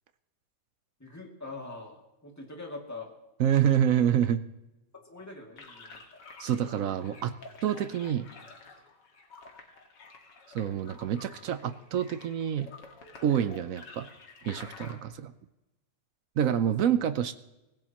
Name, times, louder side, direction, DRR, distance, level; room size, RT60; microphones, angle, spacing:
voice 1, 1.0-3.1 5.0-6.0 16.5-16.9, left 3 dB, 10° left, 0 dB, 2.3 m, -43 dB
voice 2, 3.4-4.4 6.4-7.3 7.6-8.3 10.5-12.7 13.2-14.1 14.4-15.3 16.4-17.3, right 9 dB, 65° right, 12 dB, 0.9 m, -27 dB
sound 1, 5.6-15.0, left 3 dB, 80° left, 2.5 m, -50 dB
24.5 x 15.5 x 3.0 m, 0.98 s
omnidirectional pair, 1.9 m